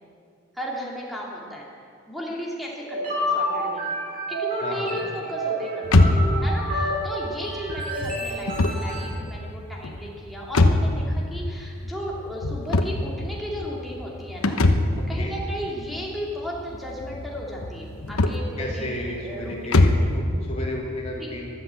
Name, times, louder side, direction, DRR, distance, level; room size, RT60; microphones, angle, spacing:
voice 1, 0.5-1.7 2.1-4.0 4.3-14.6 15.1-20.1 21.2-21.3, equal, ahead, -3 dB, 2.6 m, -35 dB
sound 1, 2.8-9.0, equal, 40° right, 4.2 m, -29 dB
voice 2, 4.6-5.0 14.9-15.3 18.6-21.5, left 1 dB, 30° left, -4 dB, 3.3 m, -33 dB
sound 2, 5.8-20.2, left 2 dB, 80° left, 1.0 m, -24 dB
13.5 x 12.5 x 8.2 m, 2.4 s
head